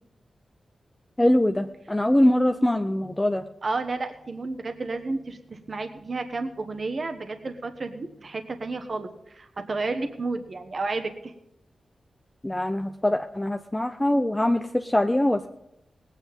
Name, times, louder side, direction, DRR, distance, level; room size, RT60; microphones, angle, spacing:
voice 1, 1.2-3.4 12.4-15.5, left 1 dB, 15° left, 6 dB, 0.7 m, -23 dB
voice 2, 3.6-11.3, right 3 dB, 50° right, 7 dB, 1.2 m, -31 dB
18.5 x 9.2 x 5.4 m, 0.84 s
cardioid pair, 75°, 0 cm